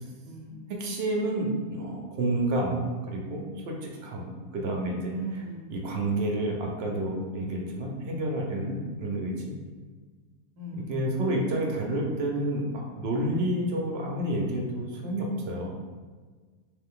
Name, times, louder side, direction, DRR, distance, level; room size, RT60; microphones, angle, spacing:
voice 1, 0.3-0.6 5.1-6.1 10.6-11.3, right 2 dB, 90° right, -2 dB, 1.2 m, -39 dB
voice 2, 0.8-5.1 5.7-9.5 10.9-15.7, right 1 dB, 55° right, -1 dB, 0.8 m, -29 dB
3.3 x 3.3 x 3.7 m, 1.4 s
omnidirectional pair, 1.6 m